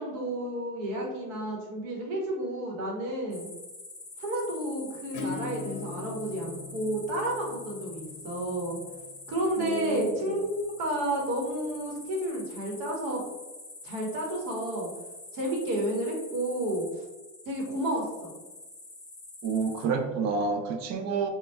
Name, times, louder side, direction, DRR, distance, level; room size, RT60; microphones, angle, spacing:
voice 1, 0.0-3.5 4.2-8.8 9.3-10.5 10.8-13.2 13.8-14.9 15.3-17.0 17.5-18.3, right 1 dB, 75° right, -1 dB, 1.2 m, -31 dB
sound 1, 3.3-19.8, left 2 dB, 10° left, 0.6 m, -46 dB
Acoustic guitar / Strum, 5.1-10.6, left 5 dB, 70° left, 0.8 m, -42 dB
voice 2, 9.6-10.2 19.4-21.3, right 4 dB, 50° right, 4 dB, 0.6 m, -29 dB
3.1 x 2.3 x 3.3 m, 1.1 s
supercardioid pair, 115°, 35 cm